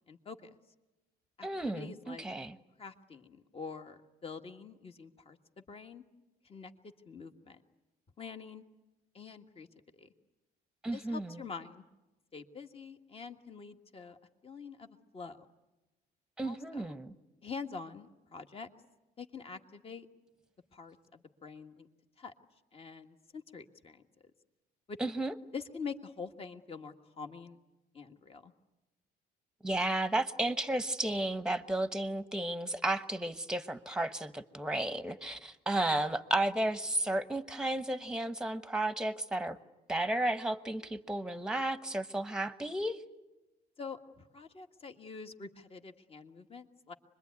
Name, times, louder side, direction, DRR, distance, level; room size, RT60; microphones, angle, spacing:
voice 1, 0.1-0.5 1.4-2.2 2.8-6.0 6.4-6.7 7.1-7.6 8.2-8.6 9.1-9.7 9.9-10.1 10.9-11.8 12.3-14.2 14.4-15.4 16.4-17.0 17.4-18.7 19.2-20.1 20.7-21.9 22.2-22.3 22.7-24.0 24.9-25.0 25.5-27.6 27.9-28.5 43.8-46.9, left 5 dB, 35° left, 6 dB, 1.7 m, -46 dB
voice 2, 1.4-2.6 10.8-11.4 16.4-17.1 25.0-25.3 29.6-39.6 39.9-43.0, right 1 dB, 5° right, 12 dB, 1.1 m, -33 dB
25.5 x 21.5 x 9.6 m, 1.0 s
cardioid pair, 110°, 17 cm